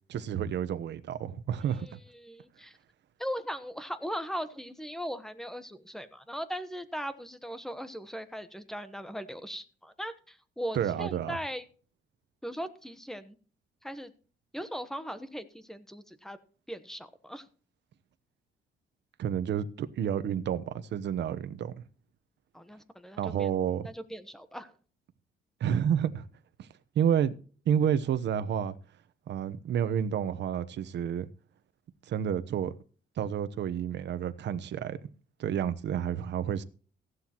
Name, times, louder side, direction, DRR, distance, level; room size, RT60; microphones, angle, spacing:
voice 1, 0.1-2.0 10.7-11.4 19.2-21.8 23.2-23.9 25.6-26.3 26.6-26.7 26.9-27.3 27.7-28.7 29.3-31.3 32.1-32.7 33.2-35.0 35.4-36.6, right 9 dB, 70° right, 1.0 m, -30 dB
voice 2, 1.7-2.7 3.2-11.6 12.4-13.4 13.8-14.1 14.5-16.4 16.7-17.4 22.5-23.5 23.8-24.7, equal, ahead, 1.1 m, -39 dB
15.5 x 11.5 x 3.0 m
cardioid pair, 140°, 19 cm